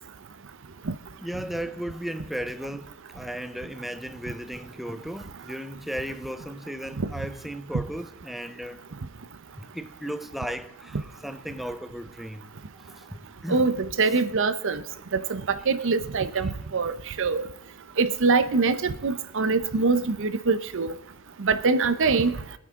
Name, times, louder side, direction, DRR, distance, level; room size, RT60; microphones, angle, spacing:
voice 1, 1.2-8.8 9.6-13.6 14.1-14.2 16.4-16.5, equal, ahead, 0.5 m, -36 dB
voice 2, 13.5-14.8 15.1-16.9 17.2-17.4 18.0-20.9 21.4-22.4, right 4 dB, 60° right, 0.7 m, -24 dB
24.0 x 9.4 x 3.7 m
head